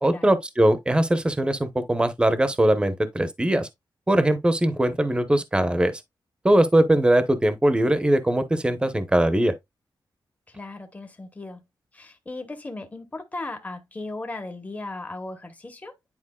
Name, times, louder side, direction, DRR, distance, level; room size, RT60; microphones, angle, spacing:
voice 1, 0.0-3.7 4.1-5.9 6.4-9.5, right 1 dB, 10° right, 0.8 m, -21 dB
voice 2, 10.5-11.6 11.9-16.1, left 2 dB, 20° left, 0.9 m, -37 dB
9.9 x 4.4 x 2.2 m
wide cardioid pair, 145°, 8 cm